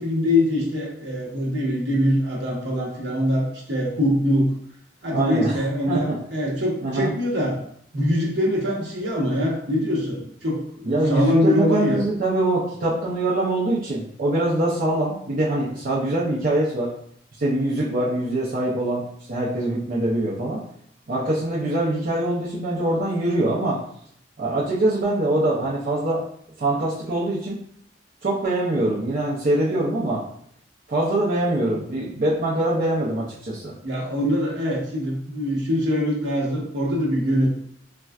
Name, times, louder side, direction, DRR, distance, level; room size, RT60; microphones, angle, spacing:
voice 1, 0.0-4.5 5.0-7.6 7.9-12.0 33.8-37.5, left 1 dB, 65° right, -3 dB, 1.0 m, -23 dB
voice 2, 5.1-6.2 6.8-7.1 10.8-16.9 17.4-20.6 21.1-23.8 24.4-26.2 26.6-27.6 28.2-30.2 30.9-33.7, right 1 dB, 50° right, -9 dB, 0.6 m, -23 dB
4.1 x 2.3 x 2.3 m, 0.66 s
head